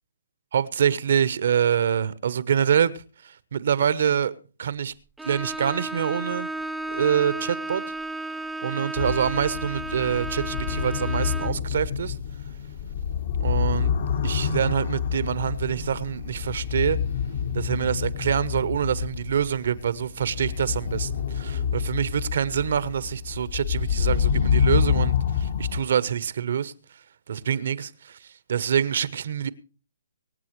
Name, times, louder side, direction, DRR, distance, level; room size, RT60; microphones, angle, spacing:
voice 1, 0.5-2.9 3.2-4.3 4.6-4.9 5.2-6.5 6.9-7.8 8.6-12.2 13.4-13.9 14.2-17.0 17.5-26.7 27.3-28.2 28.5-29.5, right 8 dB, 65° right, 1.0 m, -25 dB
Bowed string instrument, 5.2-11.7, right 2 dB, 5° right, 0.5 m, -33 dB
sound 1, 9.0-25.8, left 7 dB, 55° left, 1.4 m, -27 dB
24.5 x 8.5 x 3.2 m
hypercardioid pair, 145°, 0 cm